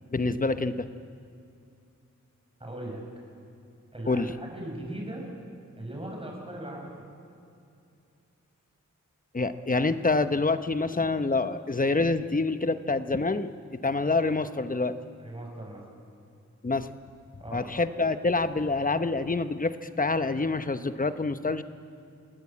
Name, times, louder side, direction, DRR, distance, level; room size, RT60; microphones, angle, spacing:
voice 1, 0.1-0.9 4.1-4.3 9.3-15.0 16.6-16.9 17.5-21.6, left 3 dB, 30° left, 11 dB, 1.0 m, -27 dB
voice 2, 2.6-3.0 3.9-5.3 5.8-7.1 15.2-15.8 17.4-17.7, right 1 dB, 20° right, 0 dB, 6.2 m, -38 dB
26.5 x 18.0 x 8.5 m, 2.5 s
wide cardioid pair, 95°, 30 cm